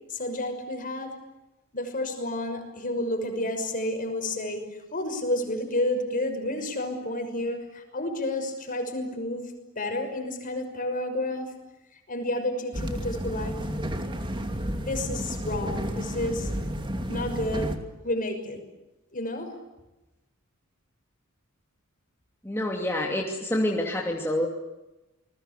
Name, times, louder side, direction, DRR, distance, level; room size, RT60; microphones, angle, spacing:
voice 1, 0.1-1.1 1.7-4.6 4.9-11.5 11.9-13.6 14.9-16.5 17.1-17.7 18.0-18.6 19.1-19.5, left 1 dB, 40° left, 6 dB, 6.1 m, -30 dB
sound 1, 12.7-17.8, equal, 25° right, 2.6 m, -31 dB
voice 2, 22.4-24.5, left 1 dB, 10° left, -1 dB, 2.8 m, -27 dB
29.0 x 21.0 x 8.5 m, 1.0 s
head